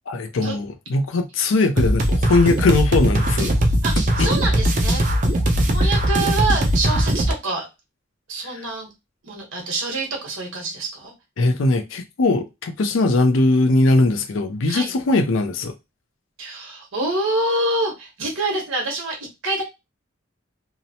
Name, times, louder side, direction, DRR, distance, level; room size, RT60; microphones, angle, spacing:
voice 1, 0.1-3.5 4.2-4.3 8.5-8.6 11.4-15.7, left 2 dB, 75° left, 0.5 m, -20 dB
sound 1, 1.8-7.3, right 1 dB, 40° right, 0.5 m, -19 dB
voice 2, 3.8-5.0 5.7-7.7 8.3-8.9 9.2-11.1 14.7-14.9 16.4-19.6, right 2 dB, 80° right, 1.1 m, -26 dB
2.8 x 2.0 x 2.7 m
head